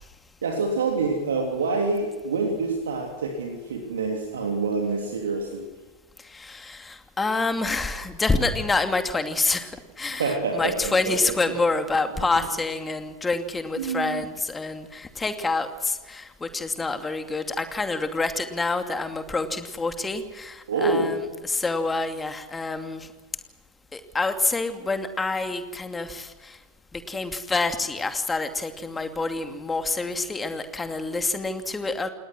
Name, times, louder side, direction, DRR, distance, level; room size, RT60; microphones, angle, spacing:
voice 1, 0.4-5.7 10.1-11.4 13.8-14.2 20.7-21.2, right 3 dB, 65° right, 2 dB, 3.2 m, -26 dB
voice 2, 6.2-9.7 10.0-23.1 23.9-26.6 26.9-32.1, left 3 dB, 10° left, 7 dB, 2.6 m, -27 dB
28.5 x 19.5 x 6.3 m, 1.2 s
figure-of-eight pair, 90°, 0 cm